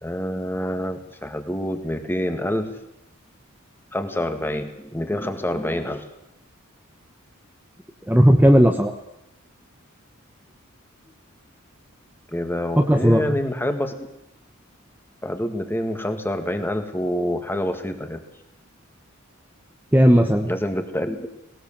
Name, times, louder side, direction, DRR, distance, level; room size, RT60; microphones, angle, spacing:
voice 1, 0.0-2.8 3.9-6.0 12.3-14.1 15.2-18.2 20.5-21.3, left 1 dB, 10° left, 6 dB, 1.9 m, -27 dB
voice 2, 8.1-8.9 12.8-13.4 19.9-20.5, equal, 10° right, 3 dB, 1.2 m, -15 dB
19.0 x 18.5 x 7.4 m, 0.84 s
head